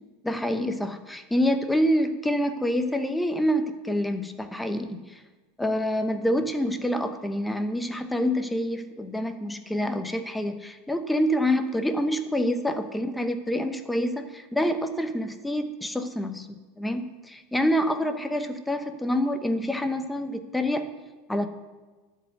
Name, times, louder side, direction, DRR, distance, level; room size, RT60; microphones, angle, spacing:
voice 1, 0.0-5.2 5.6-16.5 16.8-20.9 21.3-21.5, equal, 5° left, 8 dB, 0.8 m, -27 dB
11.5 x 4.8 x 7.9 m, 1.3 s
hypercardioid pair, 85°, 0 cm